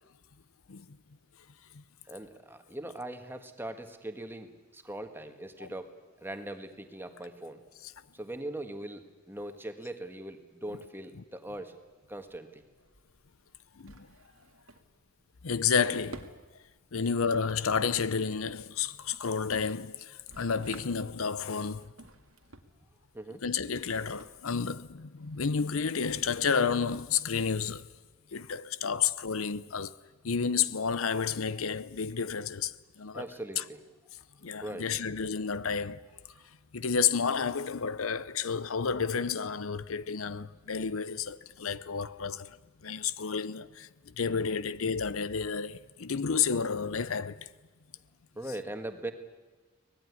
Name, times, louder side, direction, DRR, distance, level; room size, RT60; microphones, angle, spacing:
voice 1, 2.1-5.9 6.2-7.6 8.1-11.7 12.1-12.6 23.1-23.4 33.1-33.8 34.6-34.9 48.3-49.1, right 1 dB, 10° right, 1.7 m, -40 dB
Drawer open or close, 11.7-26.9, right 2 dB, 90° right, 2.0 m, -55 dB
voice 2, 13.8-14.1 15.4-16.4 16.9-21.9 23.4-27.9 28.3-29.9 30.2-33.3 33.6-33.7 34.4-36.0 36.7-47.5, left 6 dB, 80° left, 0.7 m, -31 dB
24.0 x 19.0 x 9.8 m
head